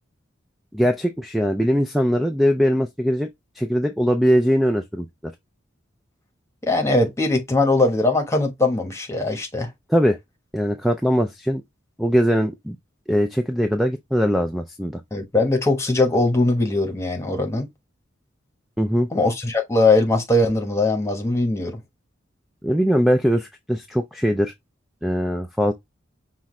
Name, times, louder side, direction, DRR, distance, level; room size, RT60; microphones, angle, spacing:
voice 1, 0.7-3.3 3.6-5.1 9.9-10.2 10.5-11.6 12.0-12.8 13.1-15.0 18.8-19.1 22.6-24.5 25.0-25.7, equal, ahead, 0.3 m, -21 dB
voice 2, 6.6-9.7 15.1-17.7 19.1-21.8, left 2 dB, 15° left, 1.1 m, -20 dB
5.7 x 2.4 x 3.1 m
head